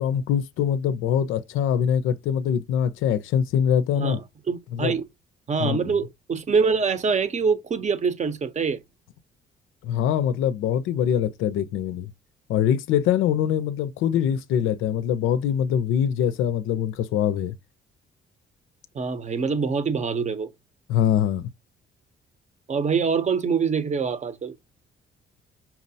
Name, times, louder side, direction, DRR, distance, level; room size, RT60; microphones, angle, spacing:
voice 1, 0.0-4.2 4.7-4.9 5.6-6.0 9.8-12.1 12.5-17.5 20.9-21.5, left 9 dB, 90° left, 0.5 m, -23 dB
voice 2, 4.5-5.0 5.5-8.8 18.9-20.5 22.7-24.5, right 5 dB, 35° right, 0.7 m, -24 dB
5.7 x 2.0 x 2.6 m
cardioid pair, 90°, 20 cm